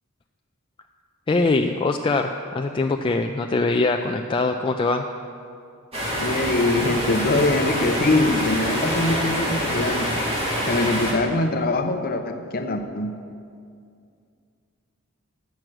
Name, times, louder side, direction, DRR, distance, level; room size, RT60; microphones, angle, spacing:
voice 1, 1.3-5.1, left 3 dB, 25° left, 4 dB, 0.3 m, -22 dB
sound 1, 5.9-11.1, equal, 30° right, 2.3 m, -26 dB
voice 2, 6.2-10.1 10.6-13.1, left 2 dB, 45° left, 6 dB, 0.7 m, -23 dB
10.5 x 6.1 x 7.8 m, 2.3 s
head